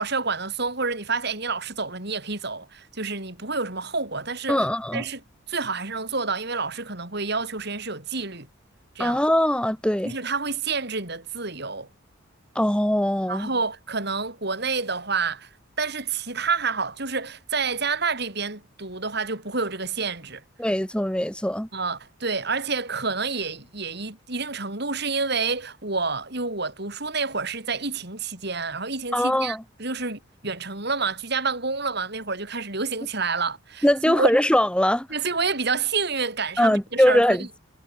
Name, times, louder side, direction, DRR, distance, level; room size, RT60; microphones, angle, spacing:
voice 1, 0.0-4.6 4.9-5.2 5.5-8.5 8.9-9.2 10.0-11.9 13.3-15.5 15.8-20.4 21.7-34.3 35.1-37.4, right 4 dB, 55° right, 6.2 m, -28 dB
voice 2, 4.5-5.0 9.0-10.1 12.5-13.5 20.6-21.7 29.1-29.6 33.8-35.1 36.6-37.6, equal, 5° left, 1.6 m, -21 dB
head